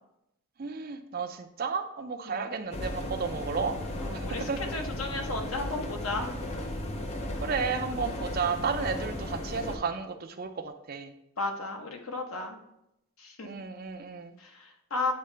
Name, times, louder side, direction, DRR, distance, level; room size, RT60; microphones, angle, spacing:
voice 1, 0.6-3.8 4.1-4.6 7.4-11.1 13.4-14.4, right 5 dB, 45° right, 7 dB, 0.5 m, -33 dB
sound 1, 2.7-9.8, left 1 dB, 30° left, 0.5 m, -35 dB
voice 2, 4.0-6.3 11.4-12.6 13.2-13.5 14.4-15.1, left 2 dB, 75° left, 3 dB, 1.0 m, -34 dB
8.5 x 3.7 x 3.2 m, 0.82 s
head